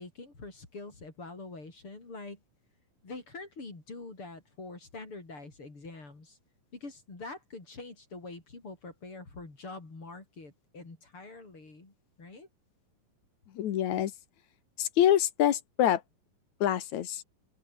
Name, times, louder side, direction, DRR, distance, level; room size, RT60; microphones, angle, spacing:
voice 1, 0.0-2.4 3.0-6.4 6.7-12.5, left 3 dB, 35° left, 6.1 m, -45 dB
voice 2, 13.6-14.1 14.8-16.0 16.6-17.2, left 11 dB, 60° left, 2.5 m, -26 dB
open air
omnidirectional pair, 4.2 m